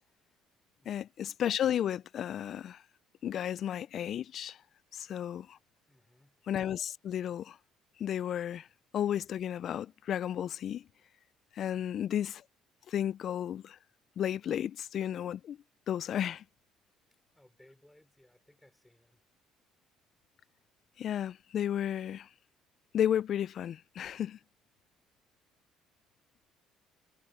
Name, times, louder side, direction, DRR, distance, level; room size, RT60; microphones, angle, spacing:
voice 1, 0.9-2.8 3.2-4.6 4.9-5.6 6.5-7.6 8.0-8.7 8.9-10.8 11.6-12.4 12.9-13.8 14.2-15.6 15.9-16.4 21.0-22.3 22.9-24.4, left 10 dB, 60° left, 0.4 m, -33 dB
voice 2, 5.9-6.4 17.3-19.2, left 1 dB, 5° left, 4.0 m, -63 dB
supercardioid pair, 80°, 0 cm